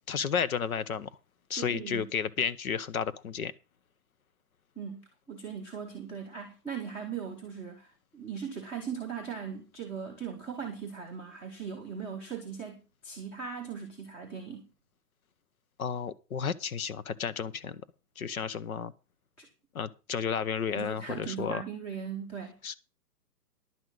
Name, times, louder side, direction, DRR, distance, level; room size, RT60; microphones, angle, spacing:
voice 1, 0.1-1.1 1.5-3.5 15.8-17.8 18.2-18.9 19.7-21.6 22.6-22.8, left 7 dB, 60° left, 1.0 m, -32 dB
voice 2, 1.5-2.1 4.7-14.7 19.4-19.5 20.7-22.6, right 7 dB, 5° left, 0.7 m, -39 dB
11.0 x 5.7 x 7.9 m
hypercardioid pair, 175°, 47 cm